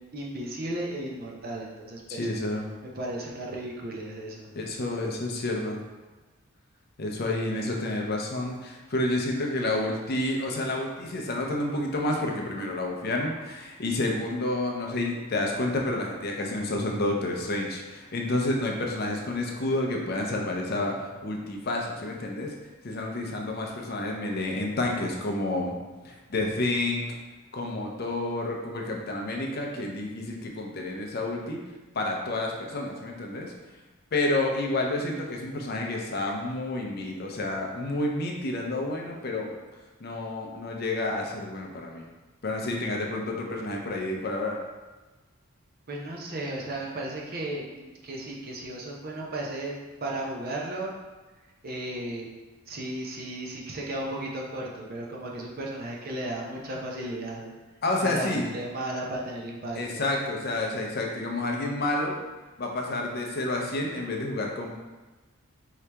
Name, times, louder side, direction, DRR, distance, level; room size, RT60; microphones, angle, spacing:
voice 1, 0.0-2.3 2.8-4.5 45.9-49.7 50.0-50.9 51.6-52.3 52.7-57.5 58.0-60.0, right 1 dB, 45° right, -2 dB, 0.7 m, -35 dB
voice 2, 2.1-2.7 4.5-5.8 7.0-22.6 22.8-25.7 26.0-27.0 27.5-31.6 31.9-33.5 34.1-39.5 40.0-42.0 42.4-44.6 57.8-58.5 59.7-62.2 62.6-64.7, left 2 dB, 45° left, 1 dB, 0.5 m, -29 dB
4.7 x 2.8 x 3.3 m, 1.2 s
head